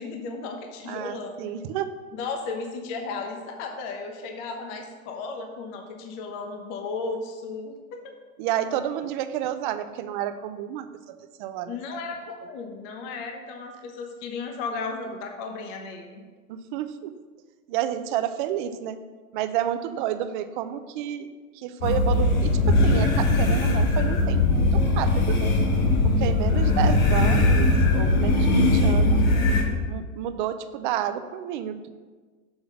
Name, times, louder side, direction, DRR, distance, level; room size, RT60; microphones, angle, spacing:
voice 1, 0.0-1.4 2.1-8.1 11.7-16.2, left 4 dB, 45° left, 3 dB, 0.9 m, -35 dB
voice 2, 0.9-1.9 8.4-12.0 16.5-17.1 17.7-19.0 19.3-21.3 21.5-25.6 26.0-29.2 29.9-31.9, right 11 dB, 40° right, 11 dB, 0.4 m, -30 dB
sound 1, 21.8-29.6, left 2 dB, 70° left, 1.5 m, -20 dB
6.3 x 3.6 x 5.9 m, 1.4 s
hypercardioid pair, 130°, 43 cm